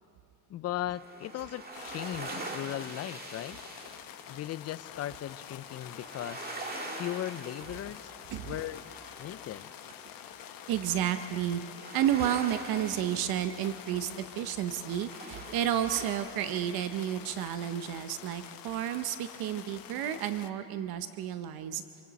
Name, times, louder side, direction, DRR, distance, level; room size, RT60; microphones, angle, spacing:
voice 1, 0.5-3.6 4.3-6.5 7.0-8.1 8.4-8.9 9.2-9.7, left 12 dB, 45° left, 15 dB, 0.5 m, -37 dB
sound 1, 0.9-16.3, right 2 dB, 25° right, 1.9 m, -45 dB
sound 2, 1.7-20.5, left 11 dB, 70° left, 0.9 m, -47 dB
voice 2, 10.7-11.6 11.9-21.8, right 11 dB, 90° right, 10 dB, 0.8 m, -31 dB
25.5 x 25.5 x 4.1 m, 2.7 s
cardioid pair, 140°, 35 cm